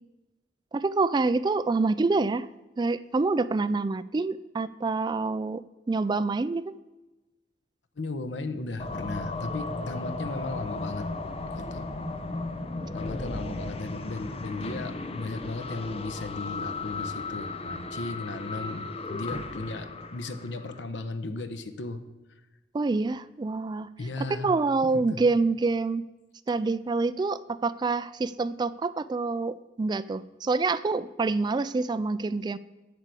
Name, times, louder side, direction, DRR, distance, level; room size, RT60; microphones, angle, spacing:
voice 1, 0.7-2.5 2.8-5.6 5.9-6.7 12.8-12.9 13.4-13.6 22.7-23.9 24.3-26.0 26.5-32.6, right 3 dB, 25° right, 15 dB, 0.3 m, -27 dB
voice 2, 8.0-11.1 11.6-11.9 12.9-22.0 24.0-24.5 24.9-25.2, left 2 dB, 90° left, 9 dB, 0.9 m, -36 dB
sound 1, 8.8-20.8, left 3 dB, 35° left, 0.6 m, -35 dB
10.5 x 4.8 x 8.1 m, 1.1 s
head